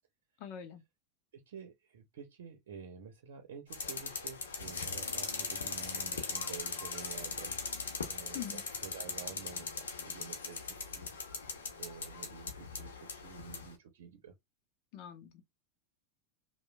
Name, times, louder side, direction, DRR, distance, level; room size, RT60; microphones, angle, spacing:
voice 1, 0.4-0.8 8.3-8.6 14.9-15.4, left 9 dB, 55° left, 0.9 m, -43 dB
voice 2, 1.3-7.6 8.0-11.1 11.8-14.3, right 7 dB, 75° right, 0.7 m, -50 dB
sound 1, 3.7-13.7, left 4 dB, 90° left, 0.8 m, -40 dB
3.0 x 2.2 x 2.2 m
hypercardioid pair, 100°, 0 cm